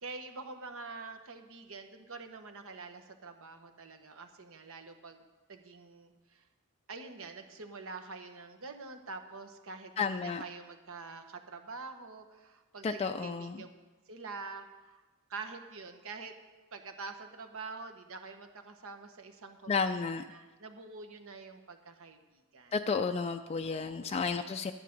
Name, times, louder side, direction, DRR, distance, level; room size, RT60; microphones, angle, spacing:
voice 1, 0.0-5.2 5.5-6.4 6.9-13.7 14.1-15.0 15.3-16.3 16.7-20.0 20.3-22.7 23.6-24.2, right 4 dB, 65° right, 6 dB, 1.2 m, -46 dB
voice 2, 10.0-10.4 12.8-13.6 19.7-20.2 22.7-24.7, left 5 dB, 30° left, 6 dB, 0.3 m, -32 dB
12.0 x 10.0 x 5.3 m, 1.2 s
head